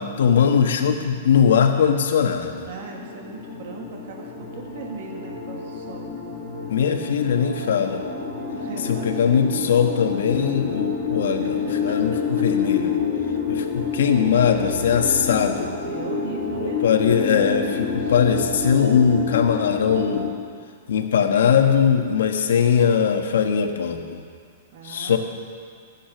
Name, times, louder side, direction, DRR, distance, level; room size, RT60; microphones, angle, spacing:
voice 1, 0.0-2.7 6.7-8.0 8.9-12.1 12.4-12.9 13.5-15.7 16.6-20.3 20.9-24.2 24.8-25.2, left 7 dB, 80° left, 4 dB, 1.4 m, -20 dB
sound 1, 2.4-20.3, left 5 dB, 25° left, 2.0 m, -28 dB
voice 2, 2.6-6.2 8.5-9.6 11.4-12.9 13.3-13.4 14.2-14.6 15.9-16.8 18.0-18.2 24.7-25.2, right 5 dB, 50° right, 0 dB, 2.0 m, -38 dB
13.5 x 9.9 x 6.0 m, 2.1 s
supercardioid pair, 170°, 0 cm